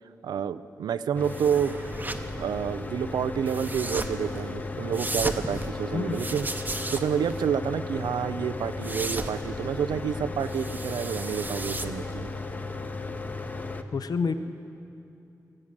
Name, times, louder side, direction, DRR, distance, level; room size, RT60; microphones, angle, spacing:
voice 1, 0.2-1.8 2.4-6.5 6.9-12.3, right 8 dB, 90° right, 14 dB, 0.4 m, -29 dB
Mechanical fan, 1.2-13.8, left 3 dB, 25° left, 0.7 m, -35 dB
sound 1, 1.2-12.3, right 2 dB, 25° right, 0.7 m, -37 dB
voice 2, 13.9-14.3, left 5 dB, 70° left, 10 dB, 0.6 m, -27 dB
17.0 x 7.3 x 6.4 m, 2.8 s
cardioid pair, 60°, 7 cm